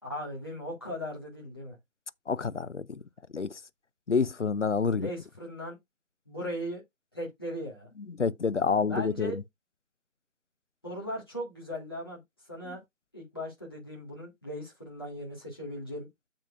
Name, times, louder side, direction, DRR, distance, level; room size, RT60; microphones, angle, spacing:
voice 1, 0.0-1.8 4.9-5.8 6.2-6.8 7.1-7.9 8.9-9.4 10.8-12.2 12.5-12.8 13.1-16.1, equal, 15° left, 1.8 m, -38 dB
voice 2, 2.3-3.0 3.3-3.6 4.1-5.1 8.2-9.4, left 5 dB, 60° left, 0.6 m, -28 dB
8.9 x 7.6 x 2.4 m
figure-of-eight pair, 170°, 41 cm